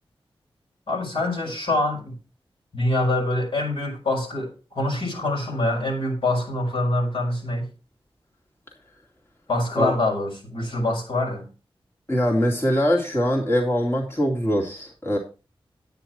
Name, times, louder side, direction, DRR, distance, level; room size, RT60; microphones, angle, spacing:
voice 1, 0.9-2.1 2.7-7.7 9.5-11.5, left 2 dB, 70° left, 5.1 m, -25 dB
voice 2, 12.1-15.2, equal, 25° left, 2.6 m, -22 dB
9.9 x 9.5 x 4.5 m
wide cardioid pair, 95°, 10 cm